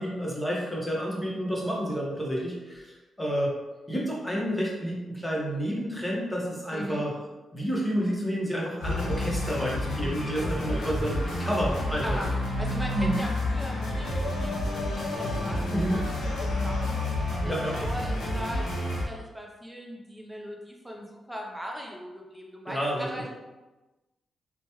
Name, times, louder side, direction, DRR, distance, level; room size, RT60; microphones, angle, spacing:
voice 1, 0.0-3.5 3.9-7.1 7.5-12.2 12.9-13.2 15.7-16.0 17.4-17.8 22.7-23.3, equal, 10° left, -4 dB, 1.1 m, -30 dB
sound 1, 8.8-19.0, left 1 dB, 80° left, 0.9 m, -30 dB
voice 2, 12.6-16.9 17.4-23.3, equal, 5° right, 0 dB, 0.7 m, -39 dB
3.0 x 2.2 x 3.0 m, 1.1 s
supercardioid pair, 55°, 0 cm